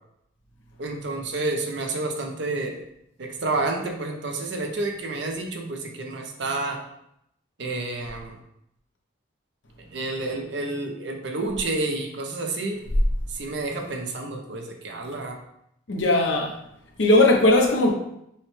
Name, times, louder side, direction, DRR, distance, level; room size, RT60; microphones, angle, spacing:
voice 1, 0.8-2.8 3.2-6.8 7.6-8.4 9.8-12.8 13.3-15.4, right 2 dB, 65° right, 3 dB, 0.6 m, -29 dB
voice 2, 15.9-16.5 17.0-17.9, left 2 dB, 75° left, 0 dB, 0.9 m, -18 dB
5.5 x 2.2 x 3.2 m, 0.77 s
head